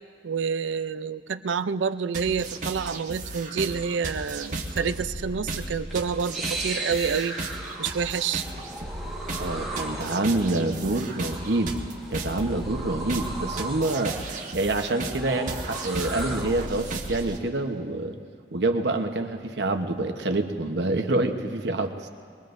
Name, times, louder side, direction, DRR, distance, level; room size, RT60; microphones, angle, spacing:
voice 1, 0.2-7.4 7.8-8.4, right 6 dB, 85° right, 12 dB, 0.5 m, -28 dB
sound 1, 2.1-17.4, right 2 dB, 45° right, 1.3 m, -35 dB
sound 2, 5.9-16.9, right 2 dB, ahead, 1.5 m, -37 dB
voice 2, 9.4-11.8 12.1-14.2 14.5-18.1 18.5-22.1, right 2 dB, 70° right, 5 dB, 1.0 m, -27 dB
23.0 x 21.0 x 2.6 m, 2.3 s
head